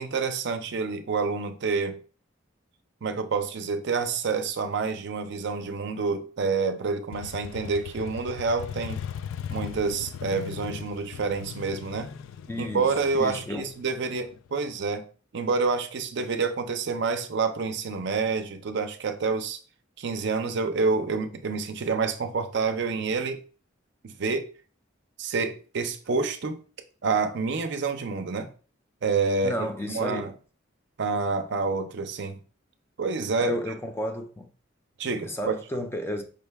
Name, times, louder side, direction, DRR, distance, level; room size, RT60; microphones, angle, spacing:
voice 1, 0.0-2.0 3.0-9.0 9.5-12.1 12.6-15.0 15.3-19.6 20.0-23.4 24.0-24.5 25.2-26.6 27.0-28.5 29.0-30.3 31.0-32.4 33.0-33.6 35.0-35.5, right 4 dB, 60° right, 0.5 m, -28 dB
Motorcycle, 7.1-14.8, left 8 dB, 90° left, 0.3 m, -38 dB
voice 2, 12.5-12.9 13.2-13.7 29.4-30.3 33.4-34.5 35.2-36.2, left 1 dB, 10° left, 0.4 m, -32 dB
5.1 x 2.2 x 3.3 m
head